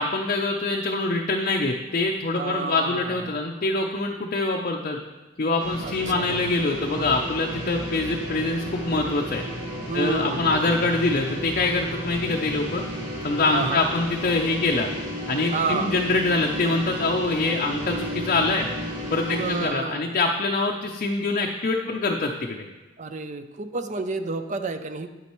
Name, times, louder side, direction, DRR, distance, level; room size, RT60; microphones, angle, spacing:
voice 1, 0.0-5.0 5.4-9.4 9.9-12.8 13.2-14.9 15.3-18.7 19.1-22.7, left 3 dB, 45° left, 1 dB, 0.5 m, -24 dB
voice 2, 2.3-3.5 5.8-6.5 9.9-10.8 13.5-13.8 15.5-15.9 19.3-20.1 23.0-25.1, right 4 dB, 40° right, 9 dB, 0.5 m, -30 dB
sound 1, 5.6-19.6, equal, 70° right, 3.1 m, -33 dB
9.5 x 8.4 x 3.1 m, 1.1 s
head